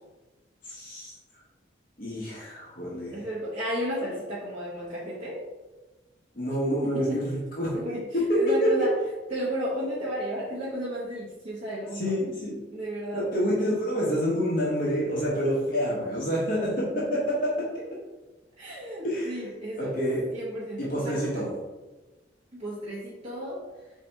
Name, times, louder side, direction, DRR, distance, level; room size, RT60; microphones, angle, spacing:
voice 1, 0.6-1.2 2.0-3.3 6.3-7.8 8.1-8.9 11.9-12.6 13.1-17.7 19.0-19.5 19.8-20.2 20.8-21.5, equal, 45° left, -6 dB, 0.9 m, -27 dB
voice 2, 3.1-5.4 6.8-7.2 7.7-8.0 8.3-8.9 9.3-12.1 12.7-13.3 15.2-15.3 18.6-19.9 20.3-21.3 22.5-23.6, equal, 35° right, -9 dB, 0.9 m, -33 dB
4.0 x 2.7 x 4.5 m, 1.2 s
head